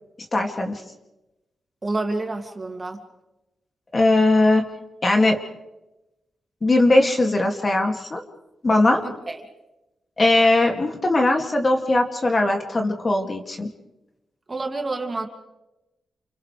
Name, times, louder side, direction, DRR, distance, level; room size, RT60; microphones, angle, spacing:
voice 1, 0.3-0.8 3.9-4.7 5.0-5.4 6.6-8.2 8.6-9.0 10.2-13.7, left 2 dB, 30° left, 2 dB, 2.4 m, -19 dB
voice 2, 1.8-3.0 9.0-9.4 14.5-15.3, right 2 dB, 30° right, 3 dB, 2.4 m, -28 dB
29.5 x 28.0 x 3.4 m, 0.97 s
wide cardioid pair, 110°, 0 cm